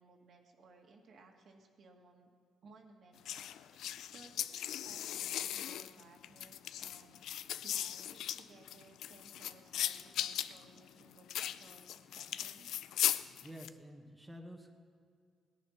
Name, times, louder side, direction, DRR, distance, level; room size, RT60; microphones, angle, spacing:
voice 1, 0.0-2.3 2.6-3.9 4.1-12.7, right 3 dB, 65° right, 1 dB, 2.0 m, -60 dB
sound 1, 3.3-13.7, left 11 dB, 80° left, 0.4 m, -38 dB
voice 2, 13.4-14.7, equal, 10° right, 1 dB, 1.5 m, -50 dB
17.5 x 10.5 x 5.8 m, 2.2 s
cardioid pair, 90°, 0 cm